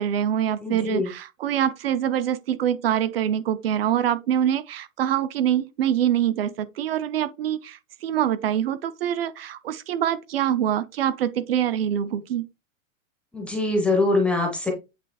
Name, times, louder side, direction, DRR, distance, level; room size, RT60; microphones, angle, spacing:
voice 1, 0.0-12.5, right 10 dB, 50° right, 0.7 m, -25 dB
voice 2, 0.6-1.1 13.3-14.7, left 2 dB, 5° left, 0.7 m, -23 dB
8.3 x 3.1 x 4.8 m
supercardioid pair, 175°, 39 cm